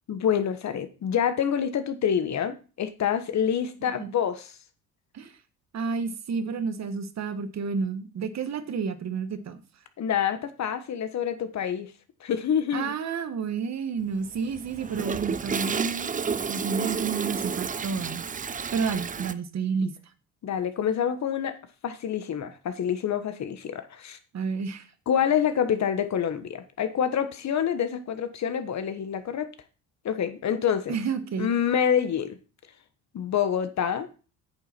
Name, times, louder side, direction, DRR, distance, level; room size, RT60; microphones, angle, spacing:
voice 1, 0.1-4.5 10.0-11.9 12.2-12.9 20.4-21.6 21.8-24.2 25.1-29.5 30.0-31.0 31.4-32.4 33.1-34.1, left 8 dB, 50° left, 10 dB, 1.3 m, -27 dB
voice 2, 5.7-9.6 12.7-18.3 18.7-19.9 24.3-24.9 30.9-31.5, right 5 dB, 50° right, 10 dB, 1.3 m, -30 dB
Toilet flush, 14.1-19.3, right 6 dB, 25° right, 0.6 m, -31 dB
8.7 x 7.0 x 4.4 m, 0.34 s
cardioid pair, 85°, 35 cm